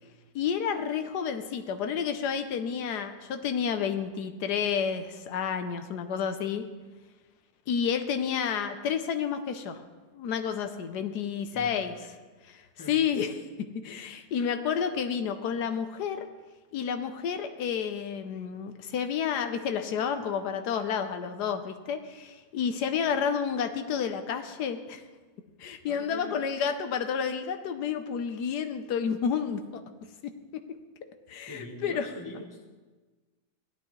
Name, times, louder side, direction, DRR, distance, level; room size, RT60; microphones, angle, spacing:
voice 1, 0.3-6.6 7.7-9.8 10.1-11.9 12.5-13.3 13.8-16.3 16.7-25.0 25.6-29.8 30.5-30.6 31.3-32.1, left 7 dB, 80° left, 8 dB, 1.3 m, -30 dB
voice 2, 11.5-12.1 12.8-13.0 25.8-26.4 31.5-32.8, left 1 dB, 15° left, 2 dB, 1.1 m, -43 dB
16.5 x 11.5 x 3.1 m, 1.3 s
omnidirectional pair, 1.8 m